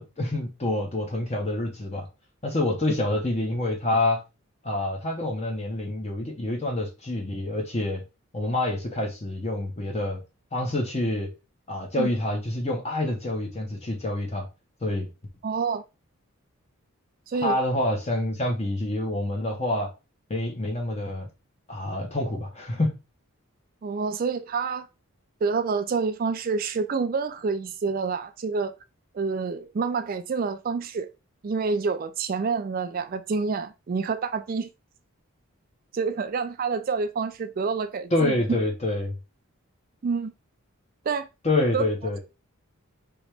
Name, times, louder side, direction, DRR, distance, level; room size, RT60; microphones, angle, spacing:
voice 1, 0.0-2.1 2.4-4.2 4.6-8.0 8.3-10.2 10.5-11.3 11.7-14.5 14.8-15.1 17.4-19.9 20.3-21.3 21.7-22.9 38.1-39.1 41.4-42.2, left 1 dB, 30° left, 0.9 m, -27 dB
voice 2, 15.4-15.8 17.3-17.6 23.8-24.9 25.4-28.7 29.1-31.1 31.4-34.7 35.9-38.3 40.0-40.3 41.1-41.3 41.7-41.9, right 5 dB, 40° right, 0.3 m, -27 dB
5.1 x 2.9 x 3.3 m
head